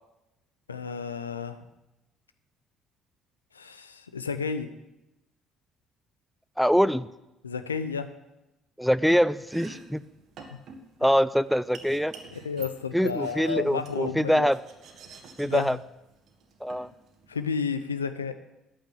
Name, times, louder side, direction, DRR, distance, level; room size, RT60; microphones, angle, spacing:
voice 1, 0.7-1.6 3.5-4.7 7.4-8.1 12.3-14.5 15.4-15.8 17.3-18.3, left 6 dB, 85° left, 10 dB, 0.6 m, -32 dB
voice 2, 6.6-7.1 8.8-10.0 11.0-12.1 12.9-14.6 15.4-15.8 16.6-16.9, equal, ahead, 17 dB, 0.5 m, -24 dB
Domestic sounds home sounds, 9.3-17.6, right 4 dB, 55° right, 1.6 m, -49 dB
8.9 x 8.5 x 9.2 m, 0.97 s
figure-of-eight pair, 50°, 0 cm